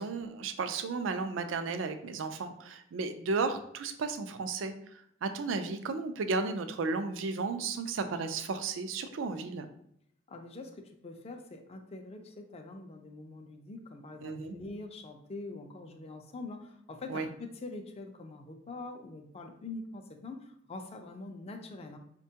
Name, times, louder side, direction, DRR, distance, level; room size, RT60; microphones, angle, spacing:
voice 1, 0.0-4.7 5.2-9.7 14.2-14.5 17.1-17.3, right 4 dB, 85° right, 8 dB, 0.4 m, -34 dB
voice 2, 10.3-20.4 20.7-22.0, left 2 dB, 35° left, 5 dB, 0.4 m, -44 dB
4.3 x 2.2 x 2.7 m, 0.70 s
head